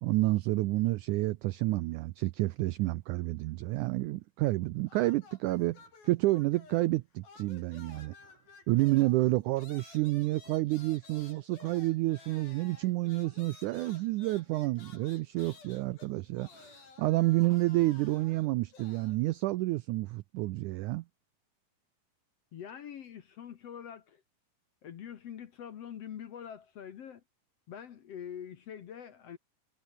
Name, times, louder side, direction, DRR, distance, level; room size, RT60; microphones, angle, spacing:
voice 1, 0.0-8.1 8.7-21.0, right 19 dB, 85° right, 1.8 m, -29 dB
sound 1, 4.9-7.0 7.2-19.2, left 5 dB, 85° left, 7.8 m, -55 dB
voice 2, 22.5-24.2 24.8-27.2 27.7-29.4, left 9 dB, 55° left, 1.9 m, -44 dB
omnidirectional pair, 4.2 m